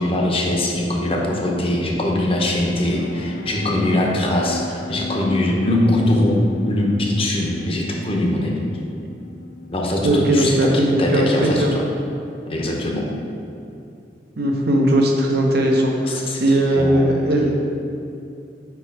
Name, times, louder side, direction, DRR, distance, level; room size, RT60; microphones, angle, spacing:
voice 1, 0.0-8.6 9.7-11.8 12.5-13.1 16.1-16.4 16.7-17.0, left 1 dB, 30° left, -1 dB, 0.8 m, -21 dB
sound 1, 2.4-10.0, left 3 dB, 60° left, 0.3 m, -34 dB
voice 2, 10.0-11.7 14.4-17.7, right 1 dB, 60° right, 1 dB, 0.8 m, -18 dB
4.7 x 4.7 x 4.6 m, 2.6 s
head